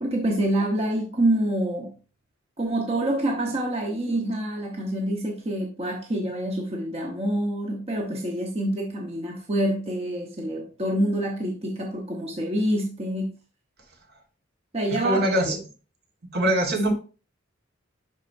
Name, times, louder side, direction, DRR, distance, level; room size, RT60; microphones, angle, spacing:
voice 1, 0.0-1.9 2.6-13.4 14.7-15.3, right 1 dB, 30° right, 1.1 m, -26 dB
voice 2, 14.9-15.6 16.3-16.9, right 1 dB, 50° right, 1.6 m, -23 dB
11.0 x 4.5 x 2.7 m
head